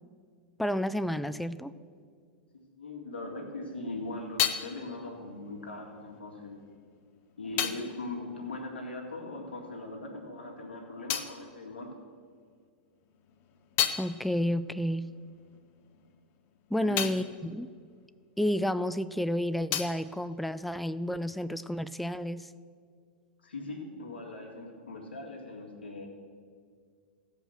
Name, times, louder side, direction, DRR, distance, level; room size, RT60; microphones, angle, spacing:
voice 1, 0.6-1.7 14.0-15.1 16.7-17.7 18.4-22.5, equal, ahead, 14 dB, 0.3 m, -31 dB
voice 2, 2.7-6.6 7.4-11.9 16.8-17.0 23.4-26.1, left 2 dB, 85° left, 0 dB, 2.1 m, -40 dB
sound 1, 3.6-9.6 9.8-12.5 12.9-19.0 19.2-21.3, left 10 dB, 45° left, 0.7 m, -37 dB
15.5 x 5.2 x 6.5 m, 2.1 s
hypercardioid pair, 105°, 6 cm